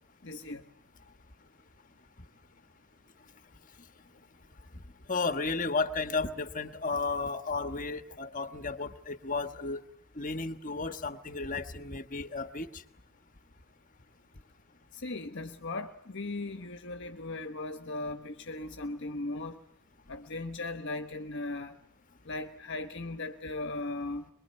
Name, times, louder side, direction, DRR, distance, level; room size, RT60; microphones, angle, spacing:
voice 1, 0.2-0.6 15.0-19.6 20.1-21.8 22.2-24.2, left 2 dB, 55° left, 1.2 m, -37 dB
voice 2, 5.1-9.8 10.1-12.8, left 3 dB, 35° left, 1.4 m, -33 dB
23.5 x 22.5 x 9.6 m
head